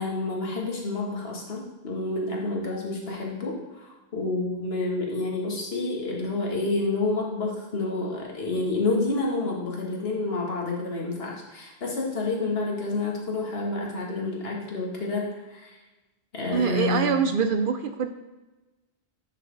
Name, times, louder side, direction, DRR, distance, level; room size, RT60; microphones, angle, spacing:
voice 1, 0.0-15.8 16.3-17.2, left 3 dB, 70° left, -1 dB, 1.6 m, -29 dB
voice 2, 16.5-18.1, right 6 dB, 60° right, 8 dB, 0.7 m, -24 dB
9.9 x 4.1 x 3.9 m, 1.1 s
omnidirectional pair, 1.1 m